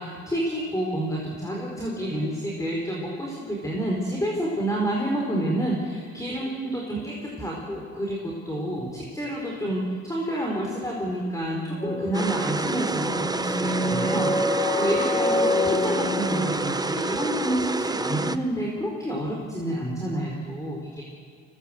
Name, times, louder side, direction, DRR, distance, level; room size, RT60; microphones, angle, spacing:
voice 1, 0.0-21.0, right 1 dB, 10° left, -1 dB, 4.3 m, -29 dB
sound 1, 11.8-17.2, left 2 dB, 25° left, 5.0 m, -27 dB
sound 2, 12.1-18.4, right 3 dB, 15° right, 0.8 m, -28 dB
24.5 x 17.5 x 7.9 m, 2.1 s
cardioid pair, 90°, 30 cm